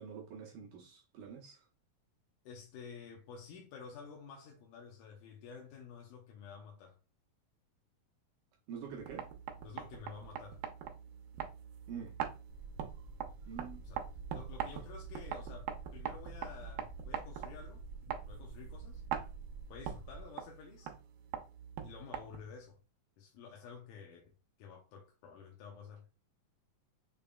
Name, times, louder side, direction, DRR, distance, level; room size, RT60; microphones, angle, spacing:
voice 1, 0.0-1.7 8.7-9.3 11.9-12.1 13.5-13.8, right 7 dB, 70° right, 2.4 m, -46 dB
voice 2, 2.4-7.0 9.6-10.6 13.8-14.1 14.3-17.8 18.3-19.0 19.7-20.9 21.8-22.8 23.2-26.1, left 6 dB, 75° left, 2.2 m, -51 dB
sound 1, 8.9-22.6, right 9 dB, 90° right, 2.5 m, -43 dB
sound 2, 12.5-20.2, right 2 dB, 55° right, 1.1 m, -50 dB
6.8 x 3.4 x 2.3 m
omnidirectional pair, 4.1 m